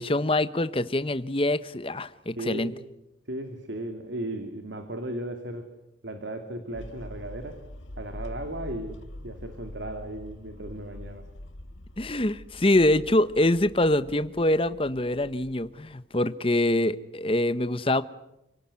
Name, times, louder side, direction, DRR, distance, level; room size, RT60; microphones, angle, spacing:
voice 1, 0.0-2.7 12.0-18.0, left 1 dB, 30° left, 13 dB, 1.0 m, -24 dB
voice 2, 2.4-2.7 3.3-5.7 6.0-7.6 8.0-9.0 9.2-11.3, right 1 dB, 70° right, 6 dB, 2.6 m, -36 dB
sound 1, 6.7-15.9, left 1 dB, 90° left, 1.6 m, -44 dB
30.0 x 18.0 x 9.8 m, 0.89 s
head